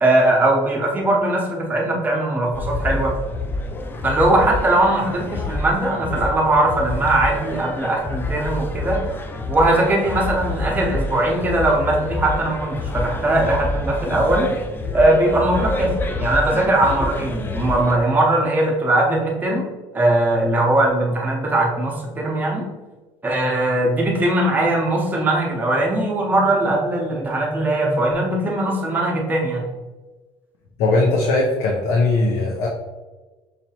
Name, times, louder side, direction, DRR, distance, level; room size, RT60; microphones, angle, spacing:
voice 1, 0.0-3.2 4.0-9.0 9.5-14.5 14.9-15.9 16.2-19.7 19.9-22.7 23.2-29.6, right 1 dB, 15° right, -2 dB, 0.8 m, -20 dB
sound 1, 2.5-18.0, left 2 dB, 20° left, 0.3 m, -28 dB
voice 2, 30.8-32.7, left 2 dB, 75° left, -2 dB, 0.6 m, -19 dB
5.7 x 2.9 x 2.8 m, 1.3 s
cardioid pair, 155°, 11 cm